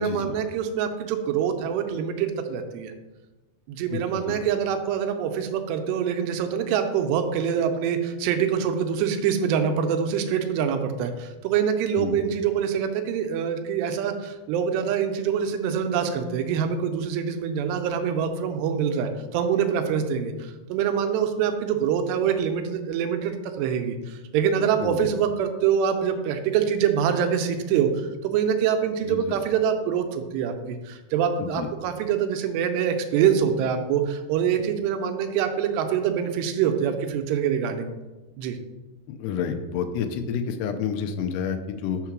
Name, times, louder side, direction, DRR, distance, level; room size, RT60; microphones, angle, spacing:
voice 1, 0.0-2.9 3.7-37.9 38.4-38.6, right 8 dB, 85° right, 7 dB, 2.7 m, -25 dB
voice 2, 3.9-4.4 12.0-12.2 24.8-25.1 29.1-29.2 31.4-31.7 39.1-42.0, left 7 dB, 85° left, 7 dB, 2.6 m, -29 dB
5.7 x 4.6 x 5.9 m, 1.1 s
omnidirectional pair, 4.8 m